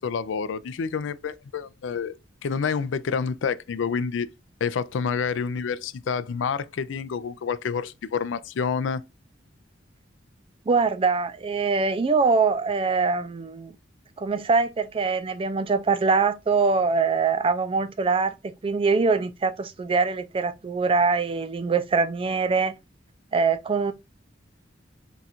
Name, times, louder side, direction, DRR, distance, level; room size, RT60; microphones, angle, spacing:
voice 1, 0.0-2.2 2.4-4.3 4.6-9.0, left 6 dB, 75° left, 0.4 m, -28 dB
voice 2, 10.7-13.7 14.2-22.7 23.3-23.9, right 4 dB, 30° right, 0.4 m, -23 dB
3.9 x 2.4 x 4.2 m
head